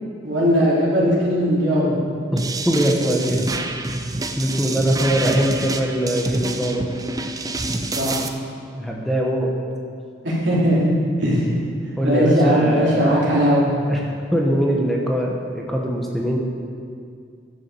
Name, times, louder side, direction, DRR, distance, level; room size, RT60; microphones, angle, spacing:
voice 1, 0.2-1.9 7.9-8.2 10.2-11.6 12.0-13.8, equal, 70° right, -6 dB, 3.4 m, -19 dB
sound 1, 2.4-8.3, right 2 dB, 20° right, 0.6 m, -27 dB
voice 2, 2.7-3.4 4.4-6.8 8.7-9.5 12.0-13.4 13.9-14.0 14.3-16.4, equal, ahead, -2 dB, 1.1 m, -22 dB
11.0 x 7.2 x 7.0 m, 2.2 s
head